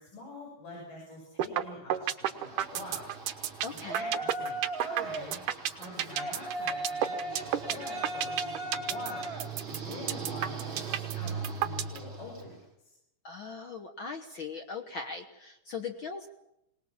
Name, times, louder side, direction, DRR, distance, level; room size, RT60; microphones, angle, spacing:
voice 1, 0.0-3.1 3.4-5.4 5.7-9.4 9.6-12.9, left 2 dB, 75° left, -3 dB, 8.2 m, -46 dB
sound 1, 1.4-1.6 1.9-12.0, right 11 dB, 80° right, 2.6 m, -30 dB
Yell, 2.3-12.5, right 3 dB, 40° right, 4.6 m, -38 dB
voice 2, 3.6-4.0 13.2-16.3, left 5 dB, 55° left, 5 dB, 1.5 m, -39 dB
23.5 x 19.0 x 7.3 m, 0.85 s
omnidirectional pair, 3.7 m